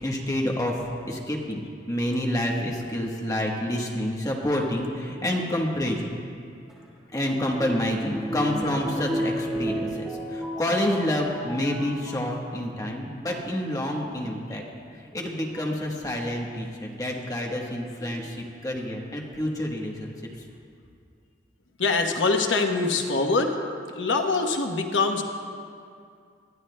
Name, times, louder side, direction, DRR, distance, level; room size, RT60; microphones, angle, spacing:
voice 1, 0.0-6.2 7.1-14.6 15.1-20.1, left 1 dB, 20° left, 0 dB, 1.1 m, -28 dB
sound 1, 6.7-12.3 13.1-13.5 14.7-14.8 15.5-15.9 18.0-18.6 19.3-19.4 19.6-19.7, equal, 5° right, 1.6 m, -34 dB
voice 2, 21.8-23.6 23.9-25.2, left 3 dB, 90° left, 4 dB, 1.0 m, -24 dB
19.0 x 13.0 x 2.2 m, 2.3 s
head